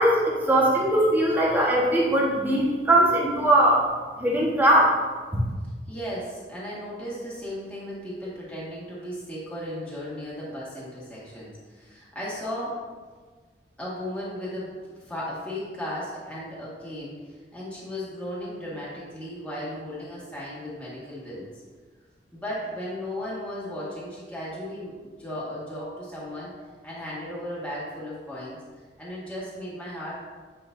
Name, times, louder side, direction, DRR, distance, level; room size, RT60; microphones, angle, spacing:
voice 1, 0.0-3.9 4.2-5.0 5.3-5.4, right 1 dB, 10° right, -4 dB, 1.4 m, -20 dB
voice 2, 5.9-12.7 13.8-21.5 22.3-26.5 26.8-28.6 29.0-30.2, equal, 5° left, -8 dB, 1.8 m, -35 dB
8.8 x 5.4 x 2.7 m, 1.4 s
head